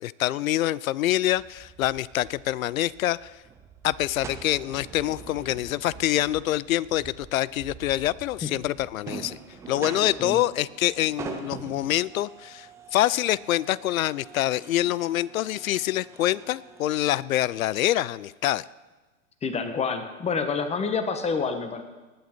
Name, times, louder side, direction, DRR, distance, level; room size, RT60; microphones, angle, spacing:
voice 1, 0.0-3.3 3.8-9.4 9.7-18.6, left 14 dB, 75° left, 22 dB, 0.5 m, -26 dB
sound 1, 1.3-17.1, right 6 dB, 10° right, 0.3 m, -44 dB
voice 2, 19.4-21.8, left 5 dB, 15° left, 8 dB, 1.2 m, -28 dB
19.0 x 8.6 x 4.4 m, 1.2 s
hypercardioid pair, 115°, 42 cm